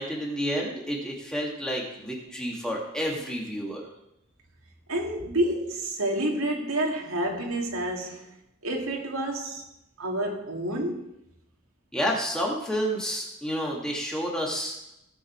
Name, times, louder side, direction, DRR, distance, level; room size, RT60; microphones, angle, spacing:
voice 1, 0.0-3.9 11.9-14.8, equal, 5° left, 2.5 m, -30 dB
voice 2, 4.9-8.3 8.6-9.6 10.0-11.1, right 1 dB, 85° right, 2.4 m, -29 dB
18.0 x 6.7 x 4.7 m
head